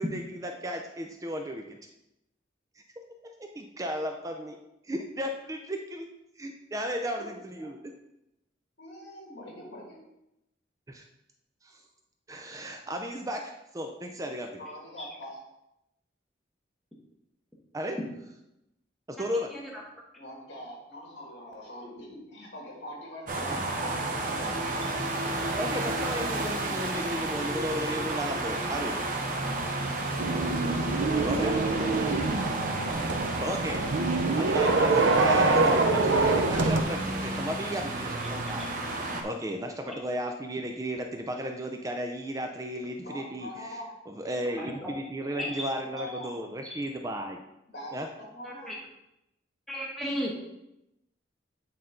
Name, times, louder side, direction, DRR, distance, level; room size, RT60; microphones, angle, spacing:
voice 1, 0.0-1.6 3.2-4.6 4.8-6.1 6.4-7.9 10.9-11.0 11.6-11.8 12.3-14.6 17.7-18.0 19.1-19.5 25.6-29.0 31.2-31.6 33.4-33.8 34.4-38.8 39.2-43.8 44.1-47.4 47.9-48.1, equal, 20° right, 4 dB, 0.4 m, -34 dB
voice 2, 8.8-10.0 14.6-15.4 20.2-24.6 43.0-43.9 45.4-46.3 47.7-48.7, equal, 65° left, -2 dB, 2.3 m, -43 dB
voice 3, 19.3-19.8 38.6-38.7 39.9-40.0 44.6-44.9 45.4-45.7 46.0-46.1 48.4-48.8 49.7-50.3, equal, ahead, -4 dB, 1.1 m, -35 dB
sound 1, 23.3-39.2, right 2 dB, 45° right, 0.9 m, -32 dB
sound 2, 30.2-36.8, right 3 dB, 85° right, 0.7 m, -25 dB
8.6 x 4.1 x 3.8 m, 0.88 s
head